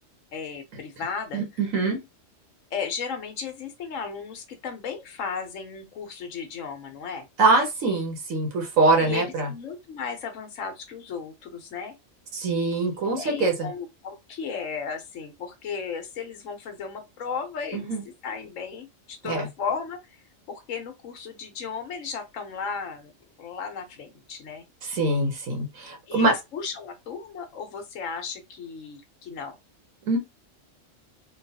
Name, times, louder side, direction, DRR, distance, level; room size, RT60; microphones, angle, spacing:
voice 1, 0.3-1.4 2.7-7.3 9.0-11.9 13.1-17.9 18.2-20.2 20.5-23.1 23.4-24.6 26.1-29.6, left 6 dB, 80° left, 1.2 m, -35 dB
voice 2, 1.3-2.0 7.4-9.5 12.3-13.7 17.7-18.0 19.2-19.5 24.8-26.3 30.1-30.2, right 3 dB, 85° right, 1.4 m, -23 dB
3.7 x 2.3 x 2.7 m
omnidirectional pair, 1.3 m